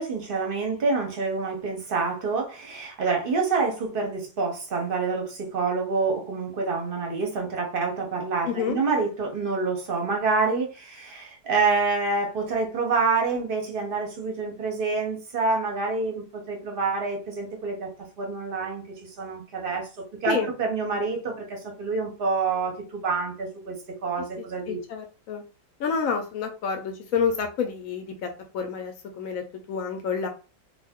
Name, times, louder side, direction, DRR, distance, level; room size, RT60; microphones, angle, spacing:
voice 1, 0.0-17.9 18.2-19.9 20.2-23.8 24.0-24.8, right 4 dB, 45° right, 0.8 m, -27 dB
voice 2, 8.5-8.8 20.3-20.5 24.7-25.4 25.8-30.3, left 6 dB, 70° left, 0.9 m, -29 dB
2.5 x 2.3 x 3.5 m
omnidirectional pair, 1.6 m